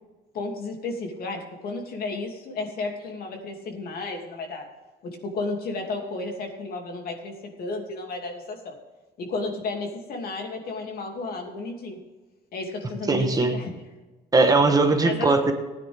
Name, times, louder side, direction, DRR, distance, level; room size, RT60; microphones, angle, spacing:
voice 1, 0.3-4.7 5.3-7.3 7.6-8.7 9.2-12.0 12.5-13.7 15.0-15.4, left 3 dB, 65° left, 2 dB, 2.7 m, -32 dB
voice 2, 13.1-13.5 14.3-15.5, right 3 dB, 20° right, 6 dB, 1.3 m, -19 dB
15.5 x 10.0 x 3.6 m, 1.2 s
cardioid pair, 110°, 17 cm